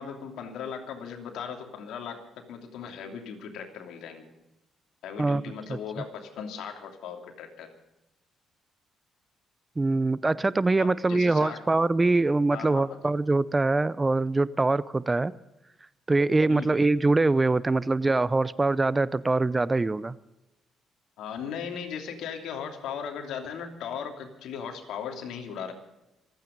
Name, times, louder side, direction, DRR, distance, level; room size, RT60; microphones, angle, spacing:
voice 1, 0.0-2.2 2.5-4.3 5.0-7.7 10.8-11.6 12.5-13.0 16.5-16.9 21.2-25.7, left 7 dB, 80° left, 4 dB, 2.9 m, -37 dB
voice 2, 9.8-15.3 16.1-20.2, right 3 dB, 20° right, 19 dB, 0.6 m, -23 dB
26.5 x 9.3 x 5.2 m, 0.92 s
cardioid pair, 90°, 0 cm